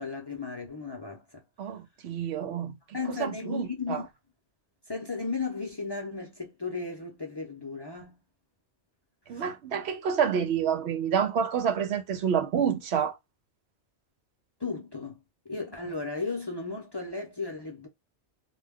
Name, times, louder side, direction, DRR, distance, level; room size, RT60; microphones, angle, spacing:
voice 1, 0.0-1.4 2.9-4.1 4.9-8.2 9.3-9.5 14.6-15.2 15.5-17.9, left 4 dB, 30° left, 0.5 m, -35 dB
voice 2, 1.6-2.8 3.1-4.0 9.3-13.2, right 7 dB, 70° right, 0.8 m, -28 dB
2.2 x 2.2 x 3.3 m
omnidirectional pair, 1.2 m